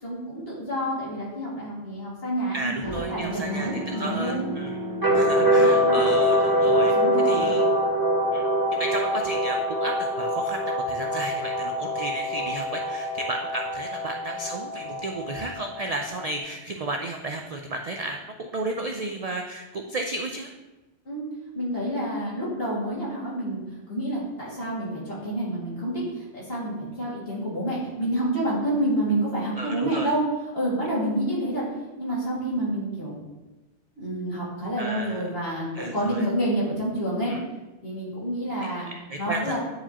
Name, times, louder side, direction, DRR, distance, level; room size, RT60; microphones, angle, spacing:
voice 1, 0.0-2.8 3.1-4.5 5.1-6.0 6.6-7.5 21.1-21.3 21.5-23.6 23.9-30.2 30.5-31.6 32.0-33.2 34.0-37.3 37.8-38.9 39.2-39.6, right 1 dB, 50° left, -7 dB, 2.5 m, -28 dB
voice 2, 2.5-4.8 5.1-6.9 7.2-7.6 8.3-8.4 8.8-20.5 29.6-30.1 34.8-35.3 35.7-36.3 37.3-37.4 38.8-39.6, right 2 dB, 65° right, 3 dB, 0.3 m, -33 dB
sound 1, 2.8-16.4, equal, 20° right, 1.2 m, -25 dB
9.2 x 4.8 x 2.9 m, 1.1 s
omnidirectional pair, 1.2 m